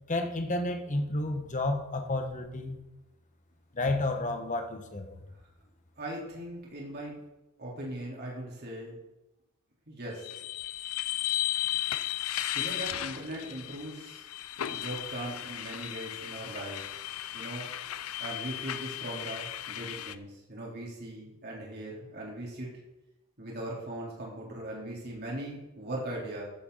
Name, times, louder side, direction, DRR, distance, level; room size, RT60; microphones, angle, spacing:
voice 1, 0.1-2.8 3.7-5.2, left 2 dB, 35° left, 5 dB, 1.4 m, -31 dB
voice 2, 6.0-7.1 7.6-9.0 9.9-10.3 12.5-14.2 14.7-16.9 17.3-17.7 18.2-22.7 23.4-26.4, right 1 dB, 50° right, -4 dB, 4.0 m, -39 dB
sound 1, 10.2-20.2, left 12 dB, 85° left, 0.6 m, -35 dB
15.0 x 8.3 x 4.2 m, 0.95 s
head